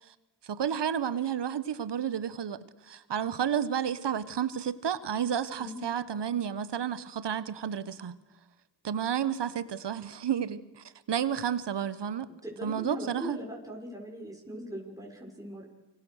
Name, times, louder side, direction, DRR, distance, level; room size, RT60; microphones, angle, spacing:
voice 1, 0.4-2.6 2.9-8.2 8.8-12.3 12.6-13.4, right 8 dB, 65° right, 1.4 m, -31 dB
voice 2, 12.3-15.7, equal, 10° right, 6.7 m, -40 dB
29.0 x 24.5 x 6.6 m
cardioid pair, 55°, 45 cm